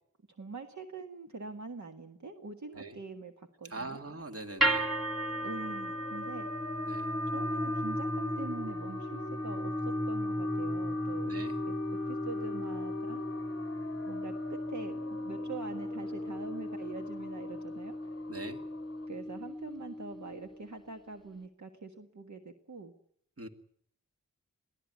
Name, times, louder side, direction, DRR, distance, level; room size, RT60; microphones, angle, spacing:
voice 1, 0.3-4.0 5.4-6.5 7.3-11.3 11.7-13.2 14.0-18.2 19.1-22.9, right 3 dB, 65° right, 5 dB, 1.7 m, -44 dB
voice 2, 3.6-4.9 6.9-7.1 11.2-11.6 18.3-18.6 23.4-23.5, right 2 dB, 50° right, 6 dB, 2.3 m, -42 dB
sound 1, 4.4-19.1, left 5 dB, 45° left, 0.8 m, -47 dB
sound 2, 4.6-20.8, equal, ahead, 2.2 m, -35 dB
22.5 x 15.0 x 9.5 m, 0.69 s
wide cardioid pair, 75°, 31 cm